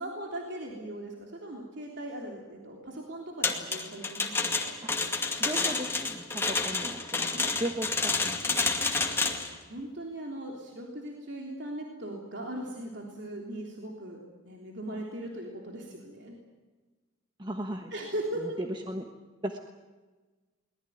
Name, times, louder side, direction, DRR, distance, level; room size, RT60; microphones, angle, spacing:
voice 1, 0.0-4.7 8.6-16.4 17.9-18.7, right 1 dB, 55° right, 0 dB, 3.4 m, -39 dB
sound 1, 3.4-9.5, left 3 dB, 10° left, 2.1 m, -29 dB
voice 2, 5.4-8.7 17.4-17.9 18.4-19.1 19.4-19.6, right 1 dB, 20° right, 4 dB, 1.3 m, -36 dB
23.0 x 19.5 x 9.4 m, 1.3 s
head